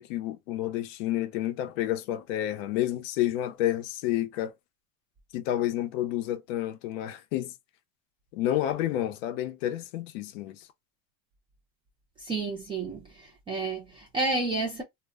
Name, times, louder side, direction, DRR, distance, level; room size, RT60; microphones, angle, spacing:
voice 1, 0.0-4.5 5.3-7.5 8.3-10.6, left 13 dB, 70° left, 0.6 m, -30 dB
voice 2, 12.2-14.8, right 3 dB, 15° right, 0.3 m, -31 dB
2.2 x 2.0 x 3.4 m
supercardioid pair, 160°, 39 cm